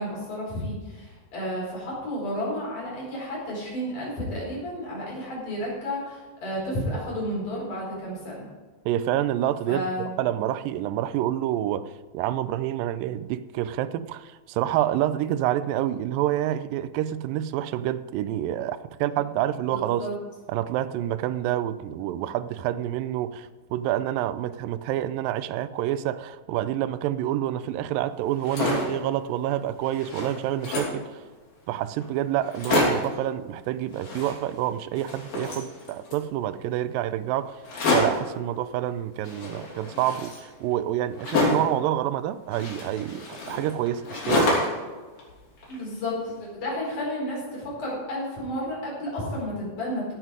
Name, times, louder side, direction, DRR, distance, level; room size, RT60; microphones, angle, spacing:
voice 1, 0.0-8.5 9.7-10.1 19.7-20.1 45.7-50.1, equal, 60° left, 6.1 m, -32 dB
voice 2, 8.9-20.1 20.5-31.2 31.7-37.6 37.9-44.7, right 12 dB, 85° right, 2.3 m, -28 dB
sound 1, 28.3-29.0 29.5-29.6 29.8-31.0 31.7-31.8 32.0-32.1 32.4-33.2 33.9-34.7 34.9-36.3 37.6-38.3 39.2-41.8 42.5-44.9 45.2-46.1, left 2 dB, 80° left, 4.9 m, -28 dB
16.5 x 8.1 x 4.9 m
omnidirectional pair, 4.0 m